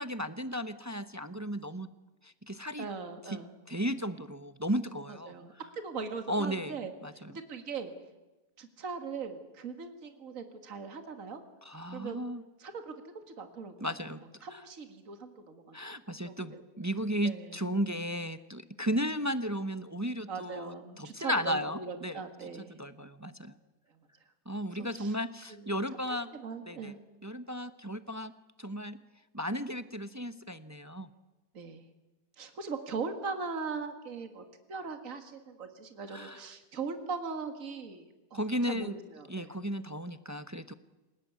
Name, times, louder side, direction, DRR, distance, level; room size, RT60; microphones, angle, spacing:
voice 1, 0.0-1.9 2.2-2.9 3.2-3.4 3.7-5.3 6.3-6.7 7.0-7.3 11.6-12.4 13.8-14.2 14.5-14.7 15.7-22.2 22.7-23.5 24.5-26.3 26.7-26.9 27.2-28.3 28.6-29.0 29.3-31.1 36.1-36.5 38.3-39.0 39.3-40.7, equal, 15° right, 12 dB, 0.6 m, -34 dB
voice 2, 2.8-3.5 5.3-7.9 8.6-11.4 11.9-12.2 12.6-12.9 13.3-13.9 14.4-15.8 16.2-16.6 17.2-17.6 20.3-22.8 24.9-25.1 25.5-25.7 26.1-27.0 31.5-31.8 32.4-34.4 34.7-38.0 38.3-39.5, right 5 dB, 55° right, 7 dB, 2.4 m, -40 dB
28.0 x 18.5 x 9.5 m, 1.1 s
omnidirectional pair, 1.7 m